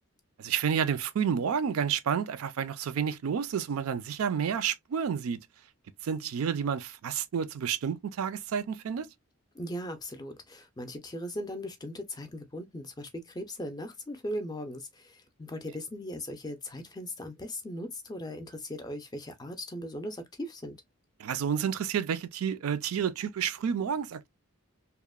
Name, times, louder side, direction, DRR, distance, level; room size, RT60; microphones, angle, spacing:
voice 1, 0.4-5.4 6.0-9.1 21.2-24.3, right 7 dB, 80° right, 0.4 m, -30 dB
voice 2, 9.5-20.8, left 1 dB, 20° left, 0.4 m, -38 dB
2.9 x 2.0 x 2.2 m
head